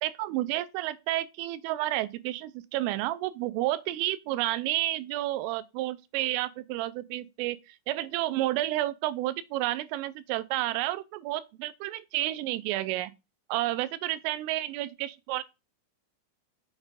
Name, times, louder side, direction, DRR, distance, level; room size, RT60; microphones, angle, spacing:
voice 1, 0.0-13.1 13.5-15.4, right 15 dB, 85° right, 3.1 m, -31 dB
7.2 x 6.6 x 3.5 m
omnidirectional pair, 5.7 m